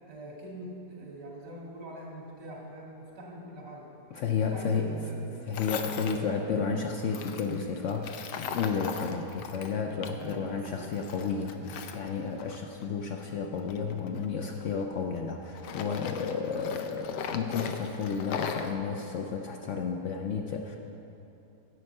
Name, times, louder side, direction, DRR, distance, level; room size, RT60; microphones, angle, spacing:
voice 1, 0.1-3.9 4.3-5.5 6.1-6.5 10.0-10.9 11.6-11.8, right 1 dB, 90° right, -3 dB, 2.6 m, -44 dB
voice 2, 4.1-5.0 5.5-11.6 11.9-20.8, left 5 dB, 65° left, 2 dB, 0.8 m, -32 dB
Tools, 5.5-6.2 7.1-10.4 10.7-12.9 13.6-15.2 15.6-18.7, left 6 dB, 80° left, 1.2 m, -39 dB
9.7 x 7.7 x 5.4 m, 2.9 s
omnidirectional pair, 1.8 m